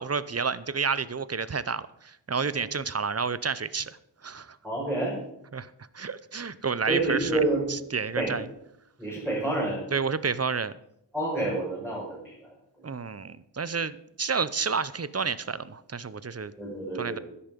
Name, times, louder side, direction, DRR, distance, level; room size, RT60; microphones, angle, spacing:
voice 1, 0.0-4.6 5.5-7.4 7.7-8.5 9.9-10.7 12.8-16.5 16.9-17.2, right 5 dB, 35° right, 16 dB, 0.7 m, -30 dB
voice 2, 4.6-5.2 6.9-7.6 8.2-8.4 9.0-9.8 11.1-12.4 16.6-17.2, right 2 dB, 5° right, -7 dB, 5.8 m, -28 dB
13.0 x 10.5 x 5.2 m, 0.78 s
wide cardioid pair, 60°, 43 cm